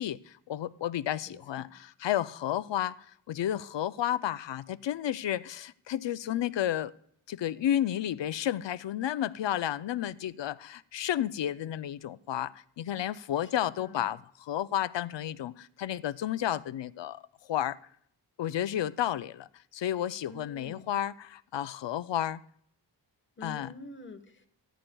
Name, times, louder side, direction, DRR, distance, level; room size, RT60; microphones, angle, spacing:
voice 1, 0.0-6.9 7.3-17.2 17.5-17.8 18.4-19.5 19.7-22.4 23.4-23.7, left 11 dB, 75° left, 0.5 m, -32 dB
voice 2, 1.2-1.7 13.4-14.1 20.3-20.9 23.4-24.5, left 2 dB, 25° left, 1.2 m, -48 dB
27.0 x 10.0 x 2.3 m
wide cardioid pair, 140°, 44 cm